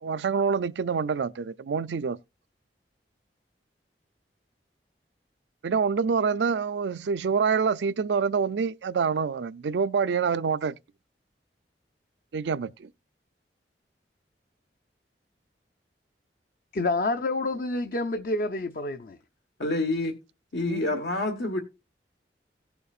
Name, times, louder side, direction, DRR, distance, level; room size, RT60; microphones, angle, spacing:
voice 1, 0.0-2.2 5.6-10.7 12.3-12.9 20.7-20.9, right 5 dB, 85° right, 0.4 m, -26 dB
voice 2, 16.7-19.2, left 2 dB, 50° left, 0.5 m, -28 dB
voice 3, 19.6-20.2 20.5-21.6, left 2 dB, 85° left, 1.2 m, -27 dB
17.0 x 6.9 x 2.4 m
head